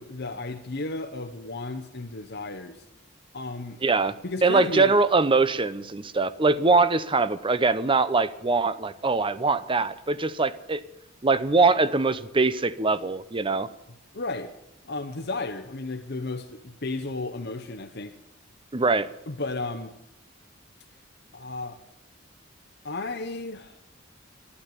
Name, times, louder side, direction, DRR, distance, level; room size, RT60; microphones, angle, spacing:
voice 1, 0.0-2.8 3.3-3.8 4.2-5.0 14.1-14.6 14.8-18.1 19.3-19.9 21.3-21.8 22.8-23.8, left 2 dB, 60° left, 1.0 m, -34 dB
voice 2, 3.8-4.1 4.4-10.8 11.2-13.7 18.7-19.1, right 3 dB, 25° right, 0.7 m, -22 dB
12.0 x 11.0 x 9.8 m
head